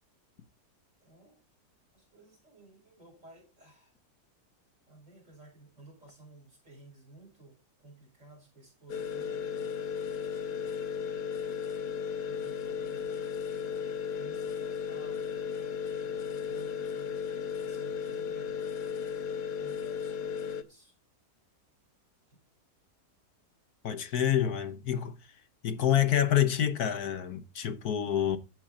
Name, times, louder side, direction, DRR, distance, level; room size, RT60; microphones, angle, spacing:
voice 1, 1.0-1.4 1.9-3.9 4.9-9.7 10.5-11.5 12.3-17.3 17.6-18.6 19.6-20.9 22.3-22.4, right 2 dB, 45° right, 7.3 m, -56 dB
sound 1, 8.9-20.6, left 7 dB, 85° left, 1.6 m, -35 dB
voice 2, 23.8-25.2 25.6-28.4, left 10 dB, 70° left, 1.4 m, -27 dB
15.5 x 6.1 x 3.8 m
omnidirectional pair, 1.8 m